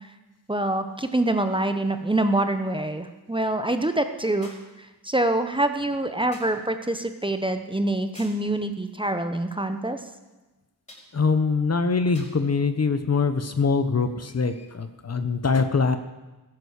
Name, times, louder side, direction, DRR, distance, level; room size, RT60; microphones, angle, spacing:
voice 1, 0.5-4.5 5.0-10.0, right 1 dB, 15° right, 8 dB, 1.1 m, -25 dB
sound 1, 4.4-4.8 6.3-6.6 8.1-8.5 10.9-11.1 12.1-12.4 13.5-13.6, left 1 dB, 20° left, 4.8 m, -47 dB
voice 2, 11.1-16.0, left 4 dB, 40° left, 9 dB, 1.1 m, -23 dB
14.0 x 11.0 x 6.6 m, 1.1 s
cardioid pair, 70°, 39 cm